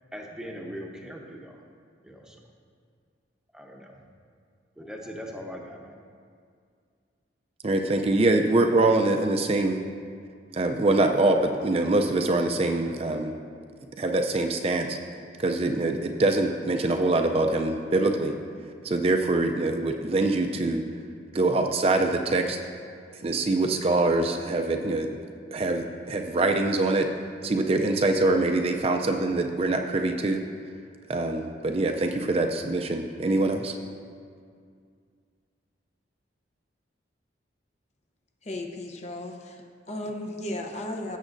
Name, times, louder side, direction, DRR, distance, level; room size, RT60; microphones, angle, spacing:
voice 1, 0.1-1.6 2.0-2.4 3.5-4.0 4.8-6.0, equal, 5° right, 0 dB, 0.8 m, -40 dB
voice 2, 7.6-9.8 10.5-13.3 14.0-15.0 15.4-18.3 18.8-20.8 21.3-22.6 23.1-25.1 25.5-27.1 27.4-30.4 31.1-33.8, right 2 dB, 35° right, 4 dB, 0.4 m, -24 dB
voice 3, 38.4-41.2, left 1 dB, 40° left, 3 dB, 0.7 m, -35 dB
16.5 x 7.3 x 2.6 m, 2.2 s
head